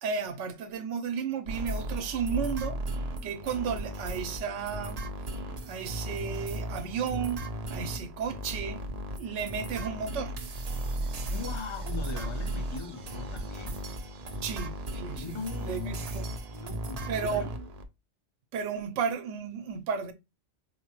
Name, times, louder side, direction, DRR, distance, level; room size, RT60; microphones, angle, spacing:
voice 1, 0.0-2.8 3.2-5.0 5.6-7.4 7.7-8.8 9.2-10.3 14.4-16.3 17.1-17.5 18.5-20.1, right 6 dB, 85° right, 1.0 m, -33 dB
sound 1, 1.5-17.8, right 1 dB, 50° right, 0.5 m, -36 dB
voice 2, 11.3-13.8 15.2-16.0 16.5-17.5, left 5 dB, 30° left, 0.6 m, -40 dB
4.6 x 2.1 x 2.9 m
omnidirectional pair, 1.2 m